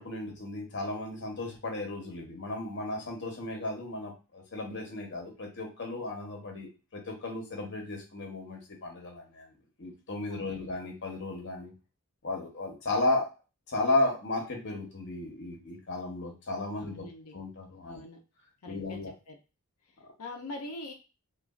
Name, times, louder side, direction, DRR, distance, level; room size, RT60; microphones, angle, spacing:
voice 1, 0.0-9.5 9.8-11.7 12.2-13.3 13.7-17.1 17.3-18.0 18.7-19.1 20.0-20.1, left 2 dB, 55° left, 1 dB, 0.9 m, -34 dB
voice 2, 10.3-10.7 16.8-17.4 17.8-18.2 18.6-19.0 19.3-19.4 20.2-20.9, left 2 dB, 75° left, 2 dB, 0.5 m, -43 dB
3.1 x 2.3 x 2.4 m, 0.31 s
head